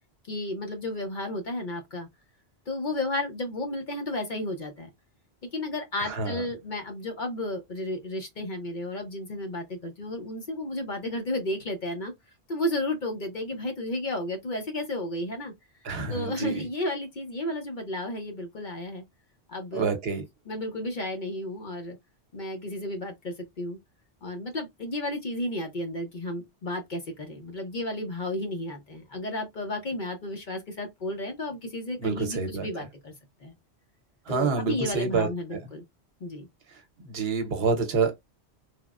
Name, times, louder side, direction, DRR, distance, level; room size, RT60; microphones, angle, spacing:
voice 1, 0.2-2.1 2.7-4.9 5.5-12.1 12.5-15.5 16.1-19.0 19.5-19.9 20.5-22.0 22.3-23.8 24.2-33.1 33.4-33.5 34.3-35.8 36.2-36.5, left 1 dB, 50° left, 0.7 m, -33 dB
voice 2, 6.0-6.4 15.8-16.6 19.7-20.2 32.0-32.7 34.3-35.6 36.7-38.1, right 5 dB, 65° right, 1.0 m, -28 dB
3.4 x 2.0 x 2.3 m
omnidirectional pair, 1.1 m